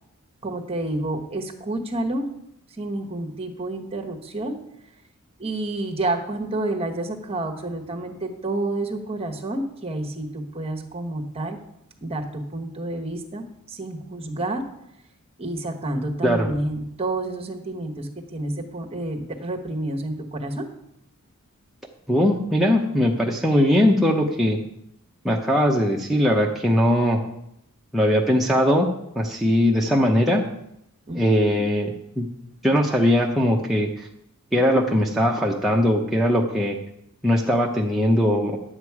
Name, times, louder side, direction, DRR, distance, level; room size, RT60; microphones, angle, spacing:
voice 1, 0.4-2.3 2.8-4.5 5.4-11.6 12.0-14.6 15.4-20.7 31.1-31.2, right 2 dB, 25° right, 3 dB, 1.2 m, -29 dB
voice 2, 22.1-24.6 25.2-27.2 27.9-30.4 31.1-32.3 32.6-34.1 34.5-36.8 37.2-38.6, equal, ahead, -2 dB, 0.7 m, -20 dB
11.0 x 8.0 x 4.7 m, 0.79 s
head